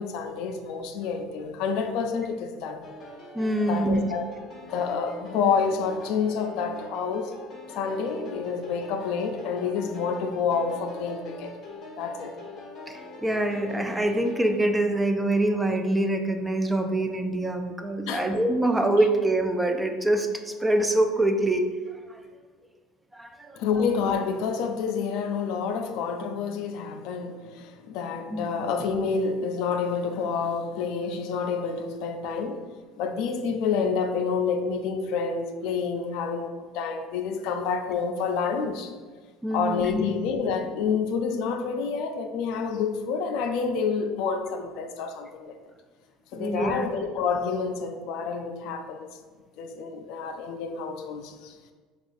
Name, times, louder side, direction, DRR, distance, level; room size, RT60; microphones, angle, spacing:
voice 1, 0.0-2.9 3.7-4.2 4.6-7.3 7.7-11.6 12.0-12.3 18.1-18.3 23.6-32.6 33.0-38.9 39.5-45.5 46.3-49.1 49.6-51.6, left 5 dB, 70° left, 7 dB, 0.3 m, -28 dB
sound 1, 2.8-14.5, left 2 dB, 45° left, 0.8 m, -43 dB
voice 2, 3.3-4.0 12.9-21.7 22.1-22.2 23.1-23.6 28.3-28.5 39.4-40.0 46.3-46.8, right 1 dB, 10° right, 5 dB, 0.4 m, -25 dB
6.0 x 2.3 x 2.5 m, 1.4 s
supercardioid pair, 100°, 0 cm